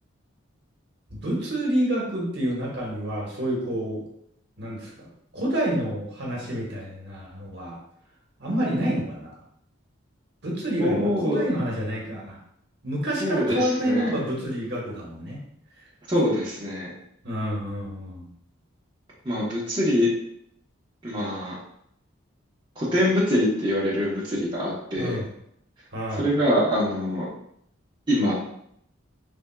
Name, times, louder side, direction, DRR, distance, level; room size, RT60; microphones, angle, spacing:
voice 1, 1.1-4.0 4.6-5.1 5.3-7.8 8.4-9.3 10.4-11.0 11.2-12.4 12.8-15.4 17.2-18.3 25.0-25.3 25.9-26.3, right 1 dB, 55° right, -3 dB, 1.1 m, -28 dB
voice 2, 10.8-11.4 13.2-14.2 16.1-16.9 19.2-20.1 21.0-21.5 22.8-25.2 26.2-27.3 28.1-28.3, equal, 20° right, -8 dB, 0.9 m, -24 dB
4.3 x 3.4 x 2.2 m, 0.72 s
head